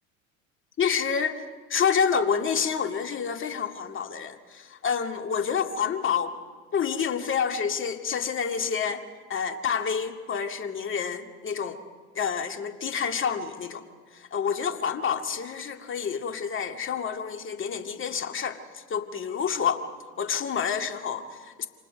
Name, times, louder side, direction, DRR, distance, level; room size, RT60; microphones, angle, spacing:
voice 1, 0.8-6.3 6.7-9.0 9.3-11.8 12.2-13.8 14.1-19.8 20.2-21.7, left 7 dB, 30° left, 5 dB, 2.2 m, -28 dB
28.5 x 26.0 x 5.2 m, 1.5 s
hypercardioid pair, 85°, 41 cm